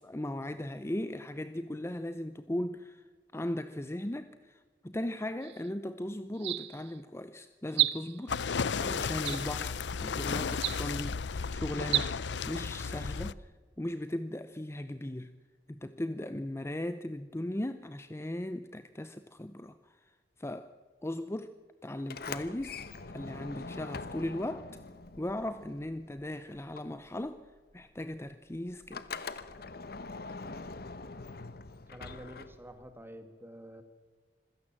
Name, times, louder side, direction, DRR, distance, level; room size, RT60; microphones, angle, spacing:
voice 1, 0.0-3.0 3.3-8.4 8.8-11.2 11.5-12.2 12.5-15.3 15.7-20.1 20.4-20.7 21.0-21.5 21.8-22.8 23.1-24.8 25.2-27.4 27.7-29.3, left 1 dB, 15° left, 11 dB, 0.6 m, -37 dB
sound 1, 5.4-5.7 6.3-7.0 7.7-8.3 9.2-9.8 10.5-11.1 11.8-12.1, right 14 dB, 75° right, 0.8 m, -32 dB
sound 2, 8.3-13.3, left 5 dB, 80° left, 0.6 m, -34 dB
Sliding door, 22.0-26.3 26.5-32.9, left 4 dB, 60° left, 1.1 m, -43 dB
voice 2, 31.9-33.8, equal, 15° right, 8 dB, 2.0 m, -48 dB
26.0 x 16.5 x 7.5 m, 1.4 s
head